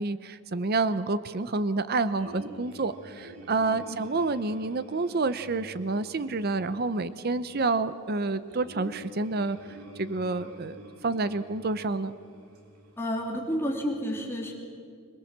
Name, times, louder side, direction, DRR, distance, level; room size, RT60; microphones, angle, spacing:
voice 1, 0.0-12.1, right 3 dB, 45° right, 13 dB, 0.6 m, -29 dB
sound 1, 2.2-13.4, right 1 dB, 90° right, 3.5 m, -49 dB
voice 2, 13.0-14.5, equal, 10° left, -2 dB, 3.1 m, -31 dB
26.5 x 20.0 x 7.3 m, 2.3 s
head